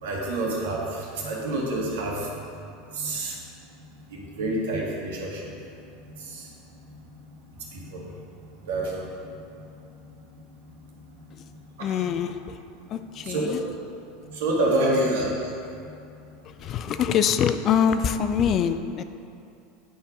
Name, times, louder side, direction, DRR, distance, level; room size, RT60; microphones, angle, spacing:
voice 1, 0.0-2.3 2.9-3.3 4.1-5.5 6.3-6.4 7.7-8.0 8.7-9.1 11.8-11.9 13.2-13.4 14.3-15.5, right 1 dB, 70° right, -3 dB, 1.6 m, -27 dB
voice 2, 11.8-12.6 12.9-13.6 16.4-19.0, left 8 dB, 40° left, 10 dB, 0.4 m, -24 dB
9.3 x 4.5 x 5.0 m, 2.6 s
figure-of-eight pair, 80°, 0 cm